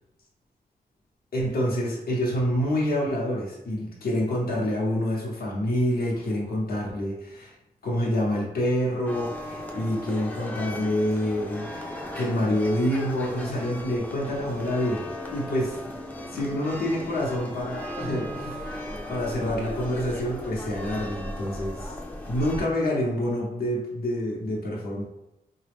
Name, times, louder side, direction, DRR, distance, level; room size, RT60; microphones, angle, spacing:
voice 1, 1.3-7.6 7.8-11.7 12.1-15.8 16.3-22.0 22.3-25.0, equal, 75° left, -4 dB, 0.9 m, -27 dB
sound 1, 9.1-22.6, left 1 dB, 10° left, 0.4 m, -37 dB
4.0 x 2.2 x 3.4 m, 0.88 s
wide cardioid pair, 105°, 16 cm